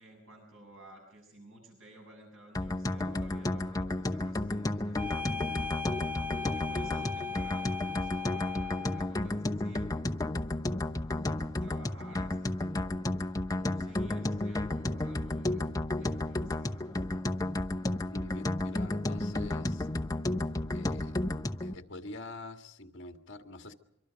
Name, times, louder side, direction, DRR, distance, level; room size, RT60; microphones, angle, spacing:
voice 1, 0.0-5.7 6.4-10.3 11.2-13.1 13.5-16.9, right 1 dB, 75° right, 1 dB, 7.0 m, -54 dB
sound 1, 2.6-21.7, left 1 dB, 20° left, 0.8 m, -32 dB
sound 2, 5.0-9.2, left 5 dB, 10° right, 1.2 m, -38 dB
voice 2, 18.1-19.9 20.7-21.2 21.6-23.7, left 2 dB, 60° left, 5 dB, 1.8 m, -46 dB
25.5 x 24.0 x 5.2 m, 0.82 s
head